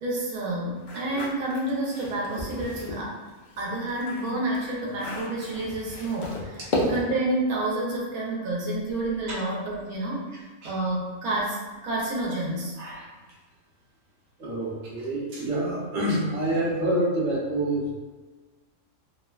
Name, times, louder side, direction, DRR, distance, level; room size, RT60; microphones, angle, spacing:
voice 1, 0.0-3.1 3.6-10.2 10.6-11.6 11.8-12.7, right 1 dB, 85° right, -4 dB, 1.1 m, -29 dB
sound 1, 0.8-3.0 3.5-7.3, left 1 dB, 80° left, 0.4 m, -33 dB
voice 2, 12.8-13.1 14.4-17.9, right 1 dB, 60° right, -6 dB, 1.0 m, -27 dB
3.1 x 2.1 x 2.3 m, 1.3 s
omnidirectional pair, 1.5 m